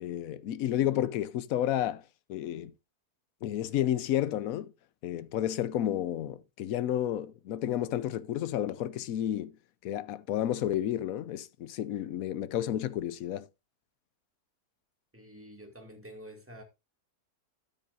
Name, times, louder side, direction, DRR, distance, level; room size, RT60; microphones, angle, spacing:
voice 1, 0.0-2.0 2.3-2.7 3.4-4.7 5.0-9.6 9.8-13.5, left 11 dB, 70° left, 1.1 m, -31 dB
voice 2, 15.1-16.6, equal, 10° right, 2.1 m, -48 dB
13.0 x 9.1 x 2.5 m
omnidirectional pair, 1.6 m